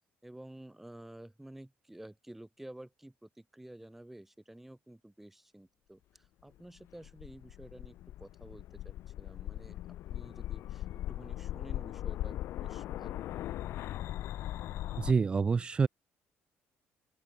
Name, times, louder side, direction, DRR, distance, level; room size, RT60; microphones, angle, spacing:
voice 1, 0.2-9.8 10.1-13.3, right 1 dB, 5° right, 3.0 m, -51 dB
sound 1, 6.8-15.1, left 14 dB, 65° left, 2.3 m, -39 dB
voice 2, 15.0-15.9, right 5 dB, 20° right, 0.4 m, -27 dB
open air
cardioid pair, 160°, 5 cm